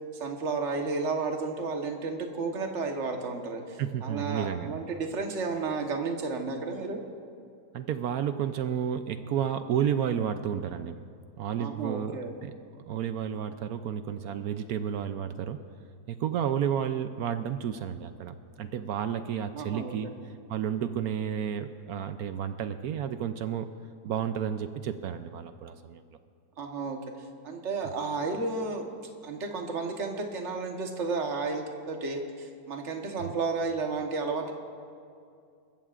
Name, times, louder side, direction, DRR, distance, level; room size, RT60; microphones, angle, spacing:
voice 1, 0.1-7.0 11.6-12.3 19.5-19.9 26.6-27.0 27.4-28.9 29.2-34.5, right 4 dB, 45° right, 3 dB, 1.5 m, -32 dB
voice 2, 3.8-4.8 7.7-11.0 11.4-12.6 12.9-15.6 16.1-20.1 20.5-23.7 24.0-26.0 33.2-33.3, right 9 dB, 70° right, 9 dB, 1.0 m, -31 dB
27.5 x 14.5 x 2.5 m, 2.4 s
omnidirectional pair, 1.8 m